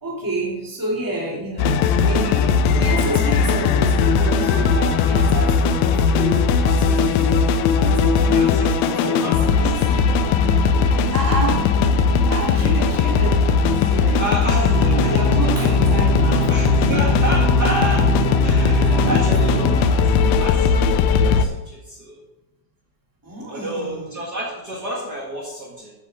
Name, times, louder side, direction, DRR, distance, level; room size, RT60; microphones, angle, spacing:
voice 1, 0.0-10.0 11.1-11.7 12.3-14.2 14.5-17.0 17.9-18.0 18.9-19.9 20.3-20.4 23.2-24.1, right 2 dB, 10° right, -4 dB, 1.3 m, -29 dB
sound 1, 1.6-21.5, left 5 dB, 80° left, 2.6 m, -18 dB
voice 2, 8.1-11.2 14.2-15.1 16.5-18.1 18.4-20.1 20.4-22.2 23.5-25.9, right 1 dB, 85° right, -5 dB, 0.9 m, -30 dB
sound 2, 14.7-19.7, right 1 dB, 40° left, 4.2 m, -24 dB
15.0 x 7.8 x 3.6 m, 1.0 s
omnidirectional pair, 5.2 m